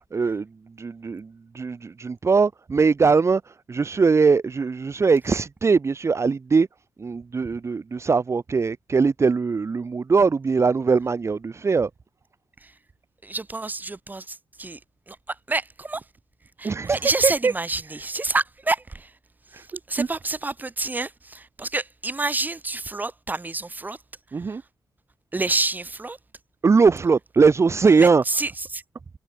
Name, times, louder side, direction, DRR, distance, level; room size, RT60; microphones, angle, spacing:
voice 1, 0.1-0.5 0.8-6.7 7.0-11.9 16.6-17.5 19.5-19.7 20.0-20.1 24.3-24.6 26.6-28.2, right 4 dB, 40° right, 1.0 m, -21 dB
voice 2, 13.2-14.8 15.1-16.0 16.6-19.1 19.6-24.0 24.5-24.6 25.3-26.2 28.0-28.8, right 3 dB, 25° right, 0.7 m, -28 dB
cardioid pair, 60°, 7 cm